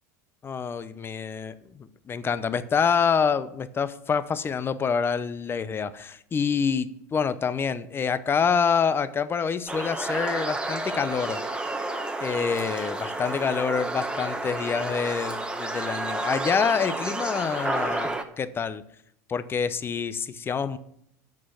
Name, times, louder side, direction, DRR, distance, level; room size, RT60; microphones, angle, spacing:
voice 1, 0.4-11.4 12.2-18.8 19.3-20.8, left 6 dB, 25° left, 14 dB, 0.7 m, -27 dB
sound 1, 9.7-18.2, right 2 dB, 10° right, 1.1 m, -31 dB
8.5 x 6.4 x 7.8 m, 0.75 s
hypercardioid pair, 100°, 9 cm